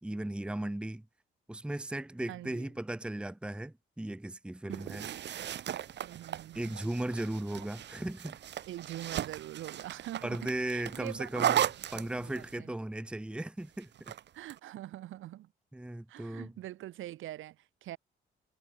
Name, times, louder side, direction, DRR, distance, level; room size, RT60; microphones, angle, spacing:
voice 1, 0.0-1.0 1.5-5.1 6.5-8.4 10.2-14.1 15.7-16.5, right 1 dB, 5° right, 0.8 m, -37 dB
voice 2, 2.3-2.7 4.7-5.1 6.0-6.8 8.7-11.3 11.9-12.7 14.3-15.5 16.1-17.6 17.8-18.0, right 14 dB, 85° right, 2.8 m, -44 dB
sound 1, 4.7-12.6 13.8-14.6, right 10 dB, 60° right, 1.3 m, -36 dB
cardioid pair, 90°, 20 cm